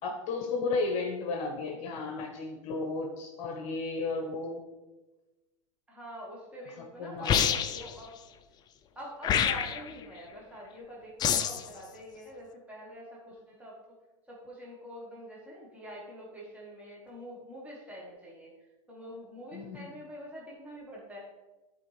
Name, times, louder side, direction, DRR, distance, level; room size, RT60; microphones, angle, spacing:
voice 1, 0.0-4.6 7.0-7.5 19.5-19.9, left 3 dB, 45° left, 2 dB, 1.2 m, -33 dB
voice 2, 5.9-8.1 8.9-13.8 14.3-21.2, equal, 10° right, -5 dB, 1.5 m, -45 dB
sound 1, 7.2-7.9 9.2-9.9 11.2-11.7, left 8 dB, 25° left, 0.4 m, -27 dB
11.5 x 4.5 x 3.3 m, 1.1 s
hypercardioid pair, 120°, 17 cm